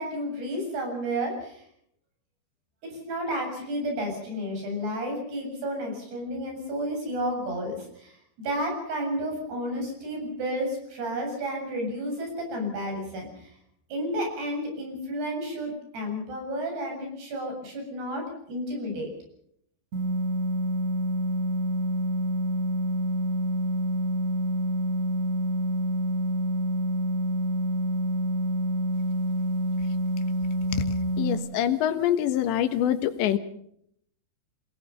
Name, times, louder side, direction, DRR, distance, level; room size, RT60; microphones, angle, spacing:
voice 1, 0.0-1.6 2.8-8.2 8.4-13.5 13.9-19.1, equal, 65° right, 2 dB, 9.6 m, -31 dB
sound 1, 19.9-31.4, equal, 45° right, 5.4 m, -27 dB
voice 2, 31.2-33.4, left 11 dB, 85° left, 10 dB, 3.6 m, -25 dB
28.0 x 20.0 x 5.7 m, 0.70 s
omnidirectional pair, 5.0 m